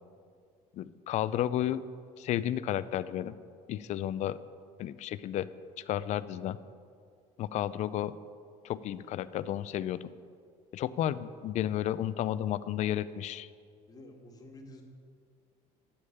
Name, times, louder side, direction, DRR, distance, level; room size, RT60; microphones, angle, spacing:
voice 1, 0.7-1.8 2.2-3.3 3.7-4.4 4.8-5.5 5.8-6.6 7.4-8.1 8.6-10.1 10.7-13.5, left 12 dB, 50° left, 15 dB, 0.4 m, -32 dB
voice 2, 13.9-14.8, left 1 dB, 25° left, 2 dB, 1.7 m, -50 dB
9.9 x 7.2 x 8.5 m, 2.2 s
cardioid pair, 130°, 15 cm